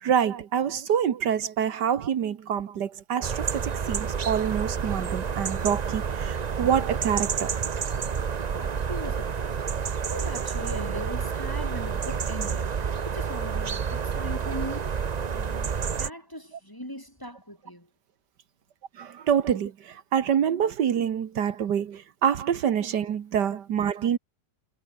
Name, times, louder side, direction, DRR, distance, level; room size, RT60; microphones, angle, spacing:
voice 1, 0.0-7.5 19.0-24.2, right 8 dB, 75° right, 1.8 m, -26 dB
sound 1, 3.2-16.1, right 6 dB, 50° right, 0.4 m, -29 dB
voice 2, 8.5-9.6 10.0-14.9 15.3-17.9, equal, 10° left, 4.2 m, -39 dB
omnidirectional pair, 1.8 m